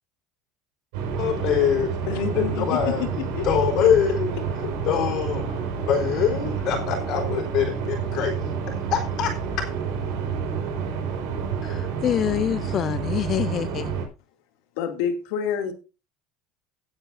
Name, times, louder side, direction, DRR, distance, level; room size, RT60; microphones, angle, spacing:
sound 1, 0.9-14.1, right 6 dB, 75° right, 5.4 m, -29 dB
voice 1, 1.2-2.0 2.4-3.0 3.4-4.3 4.8-5.6 5.9-8.4 8.9-9.7, left 8 dB, 45° left, 3.9 m, -24 dB
voice 2, 2.1-3.5 3.8-3.9 4.6-4.7 14.8-15.7, left 8 dB, 70° left, 2.6 m, -28 dB
voice 3, 11.6-14.0, left 10 dB, 30° left, 0.5 m, -26 dB
17.5 x 8.9 x 2.7 m
cardioid pair, 165°, 0 cm